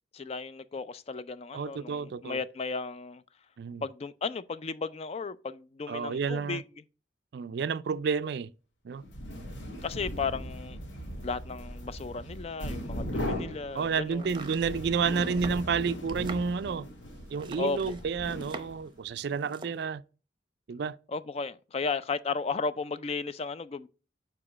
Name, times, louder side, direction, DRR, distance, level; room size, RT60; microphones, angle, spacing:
voice 1, 0.1-3.2 3.8-6.6 9.8-10.8 11.2-14.3 17.6-18.0 21.1-23.9, left 4 dB, 30° left, 0.3 m, -34 dB
voice 2, 1.5-2.4 3.6-3.8 5.9-6.6 7.3-8.5 8.8-9.0 13.7-16.9 17.3-20.0 20.7-21.0, right 5 dB, 60° right, 0.3 m, -30 dB
sound 1, 9.0-19.0, equal, 80° left, 1.6 m, -39 dB
Domestic sounds home sounds, 14.1-18.9 19.2-19.8, right 3 dB, 25° right, 0.7 m, -44 dB
5.0 x 4.6 x 5.9 m
head